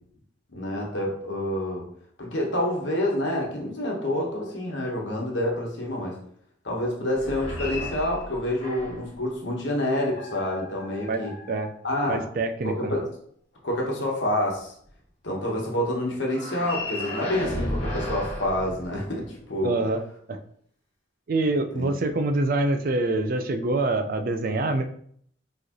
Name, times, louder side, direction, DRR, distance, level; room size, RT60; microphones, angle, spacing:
voice 1, 0.5-1.9 2.2-6.2 6.6-11.3 11.8-12.2 12.6-13.0 13.6-14.7 15.2-19.8 21.7-21.9, left 1 dB, 70° left, -2 dB, 1.1 m, -28 dB
sound 1, 7.1-9.1 9.8-12.2 16.3-19.4, left 1 dB, 35° left, 1.7 m, -35 dB
voice 2, 11.1-11.7 12.1-13.0 19.6-20.0 20.3-20.4 21.3-24.8, right 2 dB, 50° right, 8 dB, 0.4 m, -25 dB
4.5 x 3.1 x 2.9 m, 0.63 s
head